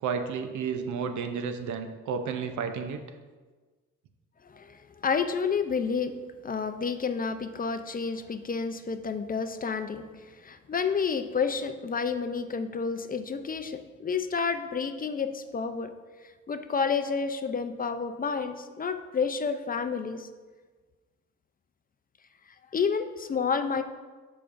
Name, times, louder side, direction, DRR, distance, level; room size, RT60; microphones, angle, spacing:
voice 1, 0.0-3.0, right 6 dB, 75° right, 8 dB, 0.7 m, -32 dB
voice 2, 4.4-6.1 6.4-10.0 10.4-15.9 16.5-20.3 22.7-23.8, left 5 dB, 30° left, 9 dB, 0.5 m, -30 dB
11.5 x 5.1 x 2.5 m, 1.4 s
cardioid pair, 90°, 30 cm